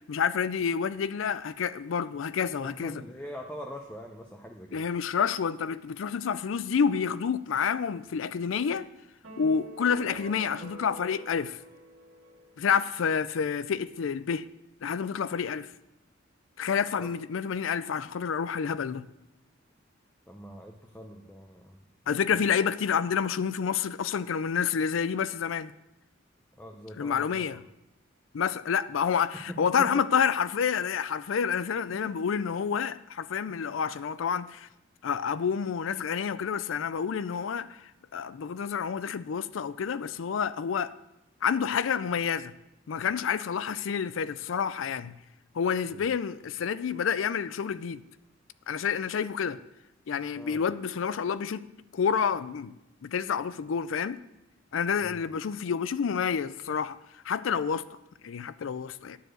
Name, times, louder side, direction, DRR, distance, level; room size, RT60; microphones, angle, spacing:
voice 1, 0.1-3.0 4.7-8.9 9.4-11.6 12.6-14.5 14.8-15.7 16.6-19.1 22.1-25.7 27.0-27.6 28.3-34.7 35.0-40.9 41.4-42.5 42.9-45.1 45.5-48.0 48.7-49.6 50.1-52.7 53.0-54.2 54.7-57.0 57.2-57.9 58.2-59.2, left 7 dB, 75° left, 0.4 m, -29 dB
voice 2, 2.6-4.8 17.0-17.1 20.3-21.8 22.3-22.4 26.6-27.4 29.3-29.9 31.9-32.2 45.9-46.1 50.4-50.6 55.0-55.2, equal, 10° left, 0.6 m, -43 dB
sound 1, 9.2-12.7, right 2 dB, 70° right, 1.8 m, -47 dB
10.0 x 4.7 x 7.7 m
head